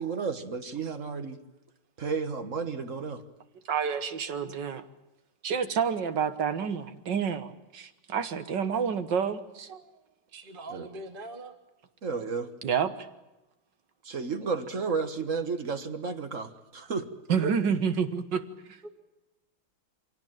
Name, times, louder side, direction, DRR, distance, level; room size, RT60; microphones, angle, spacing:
voice 1, 0.0-1.4 2.0-3.2 10.7-10.9 12.0-12.5 14.0-17.1, right 5 dB, 40° right, 9 dB, 1.6 m, -32 dB
voice 2, 3.7-4.8 5.4-9.8 12.6-13.1 17.3-18.4 18.7-18.9, right 7 dB, 60° right, 10 dB, 2.0 m, -29 dB
voice 3, 10.3-11.6 18.8-18.9, right 2 dB, 25° right, 7 dB, 1.9 m, -42 dB
25.0 x 17.5 x 9.1 m, 1.0 s
omnidirectional pair, 2.3 m